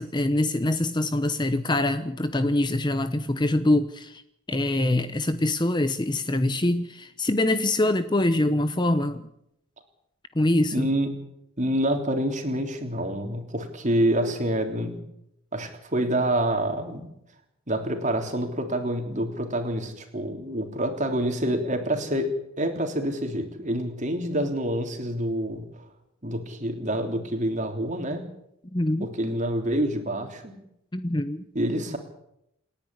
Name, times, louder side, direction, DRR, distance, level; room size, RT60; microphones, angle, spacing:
voice 1, 0.0-4.2 4.5-9.3 10.3-10.9 28.7-29.1 30.9-31.4, left 1 dB, 20° left, 11 dB, 0.8 m, -24 dB
voice 2, 10.7-11.1 11.6-15.0 15.5-17.0 17.7-25.9 26.2-28.2 29.0-30.5 31.6-32.0, right 1 dB, 35° right, 5 dB, 3.4 m, -27 dB
28.5 x 10.5 x 9.8 m, 0.80 s
head